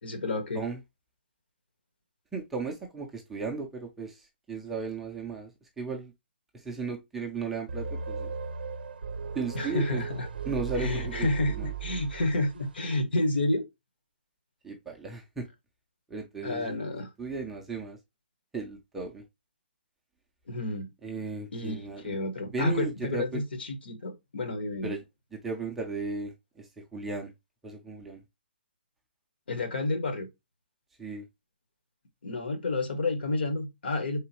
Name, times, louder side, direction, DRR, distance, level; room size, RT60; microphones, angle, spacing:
voice 1, 0.0-0.6 9.5-10.3 10.8-13.6 16.4-17.1 20.5-20.9 21.5-24.9 29.5-30.3 32.2-34.2, left 2 dB, 75° left, 1.3 m, -30 dB
voice 2, 2.3-5.5 5.8-6.1 6.5-8.3 9.3-10.0 10.4-11.7 14.6-15.5 16.1-16.8 17.2-18.0 18.5-19.2 21.0-22.2 22.5-23.4 24.8-25.0 25.3-27.3 27.6-28.2 31.0-31.3, right 4 dB, 5° right, 0.3 m, -35 dB
sound 1, 7.7-12.7, right 6 dB, 65° right, 0.5 m, -37 dB
4.0 x 3.7 x 2.8 m
hypercardioid pair, 180°, 5 cm